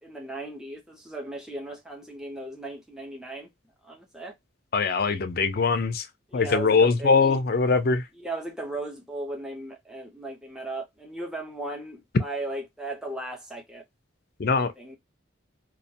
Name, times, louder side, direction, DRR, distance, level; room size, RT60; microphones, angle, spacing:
voice 1, 0.0-3.5 3.8-4.3 6.3-7.4 8.2-13.8 14.5-15.0, right 2 dB, 5° right, 0.6 m, -36 dB
voice 2, 4.7-6.1 6.3-8.1 14.4-14.7, left 4 dB, 50° left, 0.5 m, -22 dB
2.3 x 2.1 x 2.7 m
head